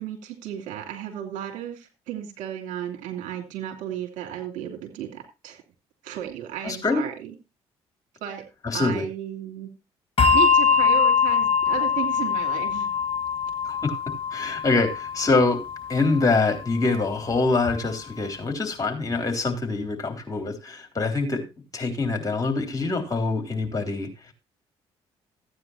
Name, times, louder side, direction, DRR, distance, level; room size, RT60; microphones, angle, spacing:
voice 1, 0.0-5.6 6.0-7.3 8.2-8.4 8.7-9.7 10.3-12.9, right 11 dB, 70° right, 3 dB, 2.9 m, -34 dB
voice 2, 6.6-7.0 8.6-9.0 13.7-14.0 14.3-15.6 15.9-21.4 21.7-24.1, left 3 dB, 25° left, 4 dB, 3.5 m, -24 dB
Bell, 10.2-17.0, left 6 dB, 40° left, 1.6 m, -23 dB
15.0 x 9.4 x 2.8 m, 0.26 s
hypercardioid pair, 50°, 14 cm